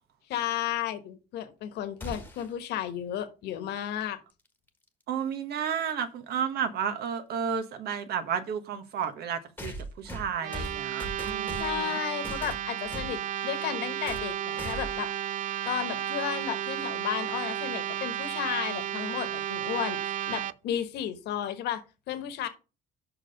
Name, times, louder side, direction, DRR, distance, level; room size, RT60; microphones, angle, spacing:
voice 1, 0.3-4.2 11.5-15.1 15.4-22.5, left 11 dB, 80° left, 1.4 m, -33 dB
sound 1, 2.0-2.6 4.7-4.8 5.9-6.0 9.6-11.9 12.2-13.2 14.1-14.3 14.6-15.1, equal, 10° left, 1.4 m, -39 dB
voice 2, 5.1-11.9, right 7 dB, 70° right, 1.3 m, -32 dB
sound 2, 10.4-20.5, right 10 dB, 50° right, 0.4 m, -33 dB
6.0 x 4.9 x 6.5 m
cardioid pair, 110°, 17 cm